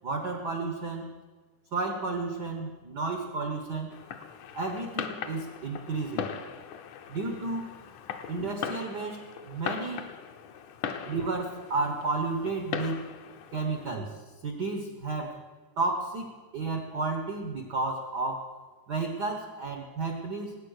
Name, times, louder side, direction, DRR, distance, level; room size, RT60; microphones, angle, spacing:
voice 1, 0.0-1.1 1.7-4.0 4.5-6.3 7.1-7.8 8.3-10.1 11.0-13.1 13.5-15.4 15.8-18.4 18.9-20.6, right 3 dB, 75° right, 4 dB, 0.9 m, -32 dB
Fireworks, 3.9-14.0, left 7 dB, 80° left, 2.3 m, -39 dB
19.5 x 8.6 x 6.5 m, 1.4 s
omnidirectional pair, 3.5 m